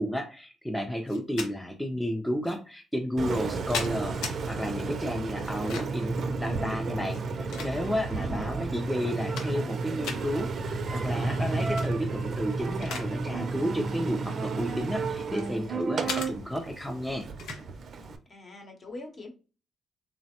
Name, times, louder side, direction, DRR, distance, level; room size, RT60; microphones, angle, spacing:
voice 1, 0.0-17.3, equal, 5° left, 2 dB, 0.4 m, -32 dB
sound 1, 1.1-1.5 2.4-2.6 3.3-4.4 5.4-6.1 7.0-8.1 8.7-8.8 9.1-9.7 10.0-10.2 11.6-11.9 12.3-13.1 13.4-13.6 14.4-15.5 16.1-16.3 17.4-17.6, left 5 dB, 90° left, 0.6 m, -37 dB
Engine, 3.2-18.2, right 3 dB, 55° right, 0.4 m, -32 dB
voice 2, 8.1-8.6 18.3-19.3, left 2 dB, 40° left, 3 dB, 0.9 m, -42 dB
3.2 x 2.0 x 2.8 m, 0.34 s
cardioid pair, 90°, 0 cm